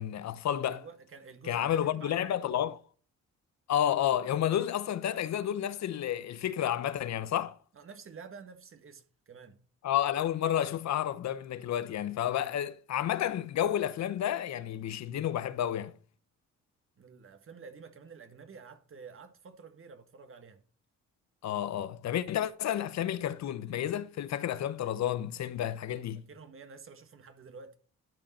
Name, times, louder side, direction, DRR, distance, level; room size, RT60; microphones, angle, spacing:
voice 1, 0.0-0.8 1.5-2.7 3.7-7.6 9.8-15.9 21.4-26.2, left 11 dB, 65° left, 0.9 m, -31 dB
voice 2, 0.7-2.7 7.7-9.6 17.0-20.6 26.1-27.8, right 5 dB, 45° right, 1.6 m, -50 dB
12.0 x 5.4 x 4.3 m
cardioid pair, 90°, 30 cm